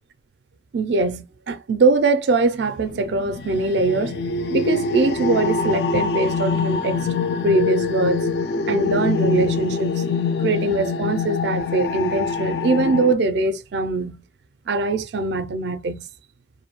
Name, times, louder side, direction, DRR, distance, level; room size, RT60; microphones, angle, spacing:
voice 1, 0.7-4.2 4.5-7.1 7.4-8.3 8.7-10.0 10.4-14.2 14.7-16.1, right 3 dB, 70° right, 0.4 m, -22 dB
sound 1, 2.9-13.1, left 4 dB, 65° left, 0.3 m, -24 dB
2.5 x 2.2 x 2.9 m
head